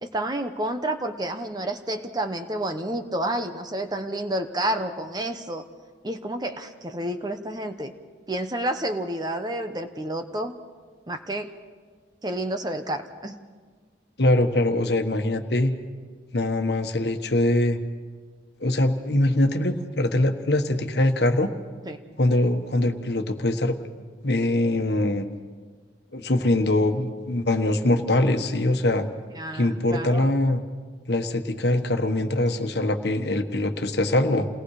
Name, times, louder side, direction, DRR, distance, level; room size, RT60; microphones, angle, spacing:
voice 1, 0.0-5.6 6.0-7.9 8.3-10.5 11.1-11.5 12.2-13.4 21.8-22.0 29.3-30.3, right 1 dB, 20° right, 7 dB, 1.0 m, -30 dB
voice 2, 14.2-15.7 16.3-17.8 18.6-21.5 22.2-23.7 24.2-25.3 26.1-29.1 29.5-30.6 31.1-34.5, left 1 dB, 65° left, 6 dB, 1.4 m, -23 dB
28.5 x 19.0 x 4.9 m, 1.5 s
head